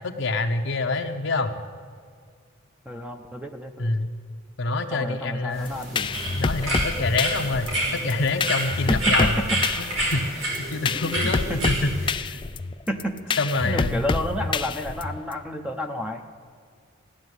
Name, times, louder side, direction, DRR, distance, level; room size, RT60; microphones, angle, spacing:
voice 1, 0.0-1.6 3.8-4.1 4.6-5.7 6.3-9.3 10.0-11.4 11.7-12.4 13.4-14.1, left 3 dB, 65° left, 4 dB, 0.9 m, -26 dB
voice 2, 2.8-3.9 4.9-6.1 8.9-9.6 10.9-11.2 11.5-11.6 12.9-13.4 13.6-16.2, equal, 5° right, 4 dB, 0.8 m, -30 dB
sound 1, 5.5-12.1, right 1 dB, 85° right, 5.3 m, -29 dB
sound 2, 5.7-15.3, left 4 dB, 25° left, 0.3 m, -28 dB
15.5 x 10.5 x 8.1 m, 2.1 s
head